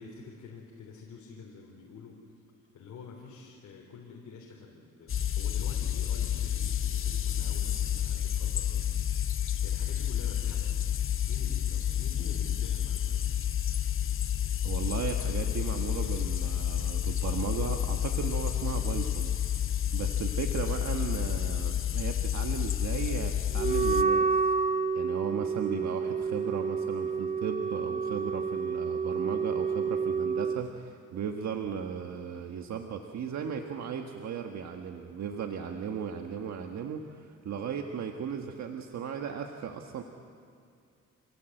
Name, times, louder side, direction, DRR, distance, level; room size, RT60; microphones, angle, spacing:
voice 1, 0.0-2.2 2.7-8.8 9.3-10.8 11.3-13.2, left 5 dB, 65° left, -1 dB, 3.5 m, -47 dB
sound 1, 5.1-24.0, left 10 dB, 45° left, 1.0 m, -30 dB
voice 2, 14.6-24.5 24.9-40.0, right 7 dB, 65° right, 4 dB, 1.5 m, -36 dB
Wind instrument woodwind instrument, 23.6-30.6, right 5 dB, 25° right, 0.9 m, -29 dB
28.0 x 17.5 x 7.8 m, 2.4 s
cardioid pair, 90°, 30 cm